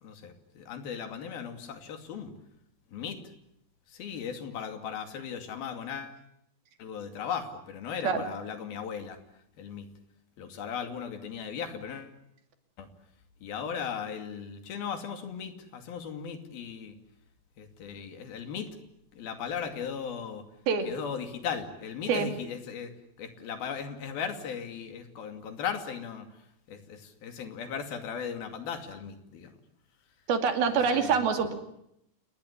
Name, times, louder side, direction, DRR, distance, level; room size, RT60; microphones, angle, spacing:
voice 1, 0.0-2.3 2.9-3.2 3.9-6.2 6.8-9.2 9.6-9.9 10.4-12.1 12.8-12.9 13.4-17.0 17.6-18.7 19.1-20.4 20.9-22.9 23.2-26.3 26.7-29.5 30.7-31.2, left 7 dB, 80° left, 7 dB, 4.4 m, -37 dB
voice 2, 30.3-31.5, right 6 dB, 80° right, 6 dB, 4.4 m, -25 dB
28.5 x 20.0 x 9.8 m, 0.78 s
omnidirectional pair, 4.3 m